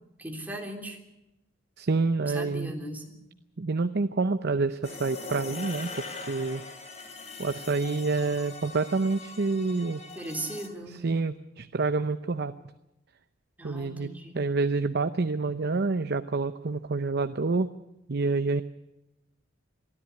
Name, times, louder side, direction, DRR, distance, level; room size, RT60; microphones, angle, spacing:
voice 1, 0.2-1.0 2.2-3.2 10.2-11.0 13.6-14.4, right 1 dB, 10° right, 1 dB, 3.4 m, -38 dB
voice 2, 1.8-2.7 3.6-5.9 6.3-6.6 7.4-10.0 10.9-12.5 13.6-17.7 18.1-18.6, right 3 dB, 55° right, 10 dB, 0.7 m, -28 dB
sound 1, 4.8-10.7, left 4 dB, 35° left, 3.0 m, -41 dB
23.0 x 13.5 x 9.6 m, 0.94 s
head